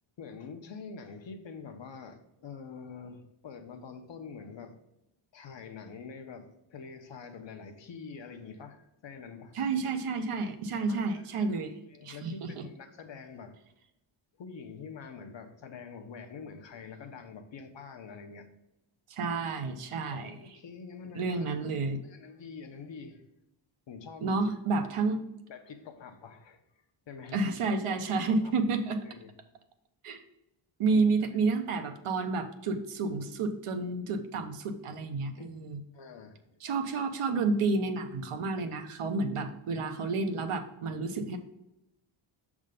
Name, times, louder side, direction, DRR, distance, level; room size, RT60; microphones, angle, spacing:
voice 1, 0.2-4.8 5.3-9.6 10.9-13.6 14.4-18.5 19.3-19.4 20.1-21.5 21.8-23.2 23.9-24.5 25.5-26.6 27.1-27.6 28.4-28.5 29.0-29.3 30.9-31.1 31.5-32.1 35.4-35.5 35.9-36.4, left 5 dB, 60° left, 6 dB, 0.8 m, -46 dB
voice 2, 9.5-11.7 12.0-12.6 19.1-20.4 21.1-22.0 24.2-25.2 27.3-29.0 30.0-30.2 30.8-35.8 36.6-41.4, right 3 dB, 85° right, 7 dB, 0.9 m, -30 dB
6.5 x 3.6 x 5.1 m, 0.87 s
wide cardioid pair, 170°, 50 cm